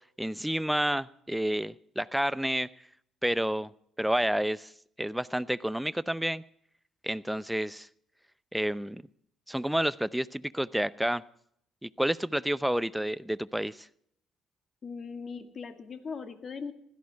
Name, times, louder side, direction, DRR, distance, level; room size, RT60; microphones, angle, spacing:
voice 1, 0.2-2.7 3.2-3.7 4.0-4.7 5.0-6.4 7.0-7.9 8.5-9.0 9.5-11.2 11.8-13.9, right 1 dB, 5° right, 17 dB, 0.7 m, -29 dB
voice 2, 14.8-16.7, left 5 dB, 45° left, 8 dB, 2.0 m, -39 dB
16.5 x 13.5 x 4.7 m, 0.69 s
hypercardioid pair, 55°, 0 cm